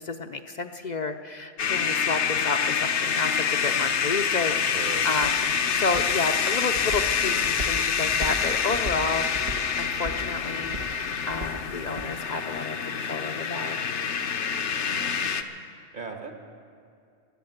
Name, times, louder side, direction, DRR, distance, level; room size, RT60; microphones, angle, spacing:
voice 1, 0.0-9.3 9.8-13.8, left 3 dB, 50° left, 7 dB, 0.6 m, -31 dB
sound 1, 1.6-15.4, left 7 dB, 80° left, 1.1 m, -26 dB
Walk footsteps, 4.0-12.1, right 1 dB, 60° right, 1.4 m, -38 dB
voice 2, 4.6-5.1 14.7-15.1 15.9-16.3, right 4 dB, 45° right, 3 dB, 1.7 m, -38 dB
16.0 x 11.0 x 8.0 m, 2.4 s
omnidirectional pair, 1.2 m